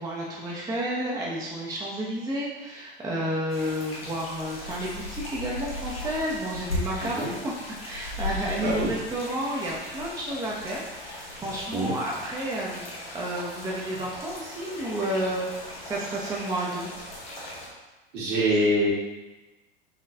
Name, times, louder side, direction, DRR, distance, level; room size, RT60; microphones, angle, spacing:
voice 1, 0.0-16.9 18.5-18.7, right 1 dB, 10° right, -4 dB, 0.6 m, -31 dB
sound 1, 3.5-17.7, left 2 dB, 80° left, 1.0 m, -38 dB
voice 2, 8.6-8.9 11.7-11.9 18.1-18.9, equal, 60° right, -5 dB, 1.4 m, -24 dB
4.1 x 3.0 x 2.6 m, 1.1 s
figure-of-eight pair, 80°, 29 cm